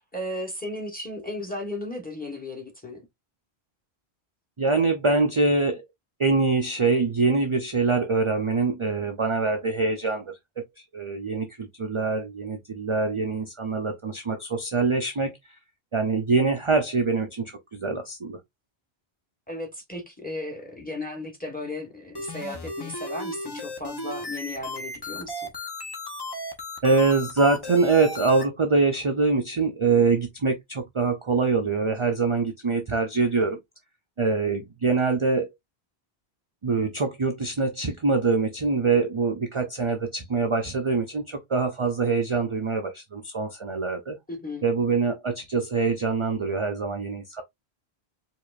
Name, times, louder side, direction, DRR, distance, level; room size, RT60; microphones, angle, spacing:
voice 1, 0.1-3.0 19.5-25.5 44.3-44.6, left 1 dB, 10° left, 1.2 m, -35 dB
voice 2, 4.6-5.8 6.2-10.3 10.9-15.3 15.9-18.4 26.8-33.6 34.2-35.5 36.6-44.2 44.6-47.4, right 4 dB, 35° right, 0.6 m, -24 dB
sound 1, 22.1-28.4, left 2 dB, 25° left, 0.9 m, -35 dB
4.9 x 2.9 x 2.4 m
omnidirectional pair, 1.1 m